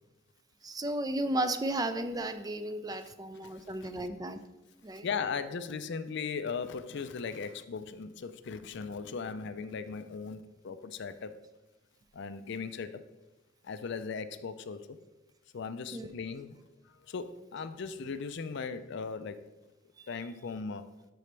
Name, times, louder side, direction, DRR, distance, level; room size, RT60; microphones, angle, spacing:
voice 1, 0.6-4.4 4.8-5.1 15.9-16.1, right 1 dB, 20° right, 10 dB, 0.4 m, -34 dB
voice 2, 5.0-11.3 12.1-13.0 13.6-15.0 15.5-16.6 16.8-19.4 20.1-20.8, left 5 dB, 60° left, 11 dB, 0.4 m, -38 dB
11.5 x 4.2 x 3.3 m, 1.0 s
head